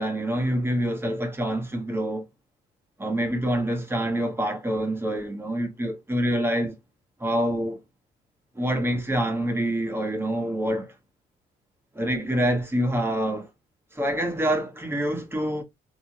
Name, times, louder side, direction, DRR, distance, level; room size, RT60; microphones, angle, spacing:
voice 1, 0.0-2.2 3.0-6.7 7.2-7.8 8.6-10.9 11.9-13.5 13.9-15.6, right 1 dB, 10° right, 1.3 m, -26 dB
3.5 x 2.8 x 3.0 m
cardioid pair, 90°, 20 cm